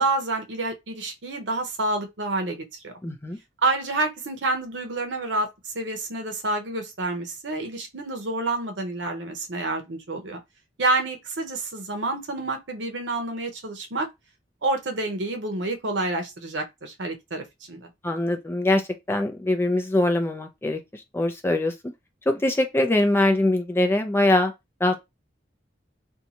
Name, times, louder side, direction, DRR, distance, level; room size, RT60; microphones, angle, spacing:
voice 1, 0.0-2.9 3.6-10.4 10.8-14.1 14.6-17.9, right 2 dB, 85° right, 0.8 m, -28 dB
voice 2, 3.0-3.4 18.0-21.7 22.3-24.5 24.8-25.0, left 1 dB, 15° left, 0.5 m, -23 dB
2.7 x 2.3 x 2.8 m
head